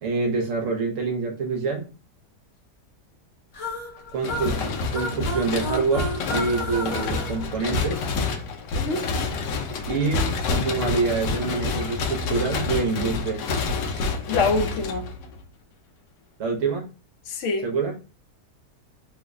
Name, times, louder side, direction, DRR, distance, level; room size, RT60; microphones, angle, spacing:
voice 1, 0.0-1.9 4.1-8.0 9.9-13.4 16.4-16.8 17.6-17.9, right 4 dB, 60° right, 1.0 m, -26 dB
sound 1, 3.5-8.3, equal, 45° left, 1.0 m, -33 dB
sound 2, 4.2-15.4, left 4 dB, 85° left, 1.2 m, -28 dB
voice 2, 8.7-9.1 14.3-15.1 17.3-17.7, left 3 dB, 60° left, 0.8 m, -25 dB
3.2 x 2.1 x 3.5 m
omnidirectional pair, 1.7 m